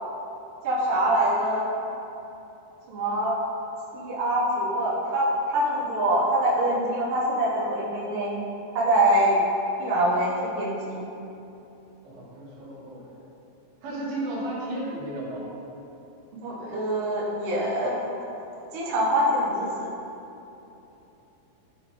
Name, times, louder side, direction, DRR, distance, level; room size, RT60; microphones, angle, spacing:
voice 1, 0.6-1.7 2.9-3.4 3.9-8.3 8.7-9.4 9.8-11.0 16.4-18.1 18.7-19.9, right 1 dB, 80° right, -7 dB, 1.9 m, -24 dB
voice 2, 12.0-13.2 13.8-15.5, right 1 dB, 65° right, -7 dB, 2.9 m, -34 dB
11.5 x 4.1 x 3.1 m, 2.9 s
omnidirectional pair, 5.3 m